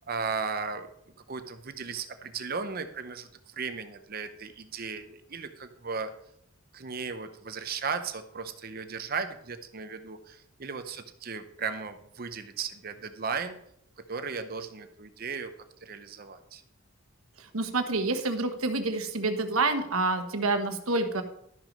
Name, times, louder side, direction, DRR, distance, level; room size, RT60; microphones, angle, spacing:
voice 1, 0.1-0.9 1.3-6.1 6.7-13.6 14.1-15.5 15.8-16.6, right 5 dB, 45° right, 9 dB, 0.7 m, -36 dB
voice 2, 17.4-21.2, right 3 dB, 85° right, 7 dB, 1.2 m, -28 dB
12.0 x 6.1 x 5.3 m, 0.73 s
head